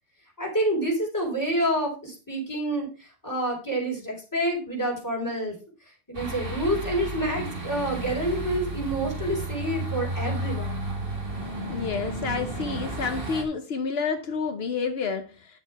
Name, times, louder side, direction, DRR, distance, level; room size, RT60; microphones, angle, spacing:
voice 1, 0.4-5.5 6.1-10.8, right 1 dB, 20° left, -2 dB, 4.4 m, -28 dB
sound 1, 6.1-13.4, right 2 dB, 60° right, 2.4 m, -32 dB
voice 2, 11.7-15.6, left 5 dB, 75° left, 7 dB, 1.1 m, -29 dB
9.8 x 6.8 x 4.6 m, 0.33 s
omnidirectional pair, 1.0 m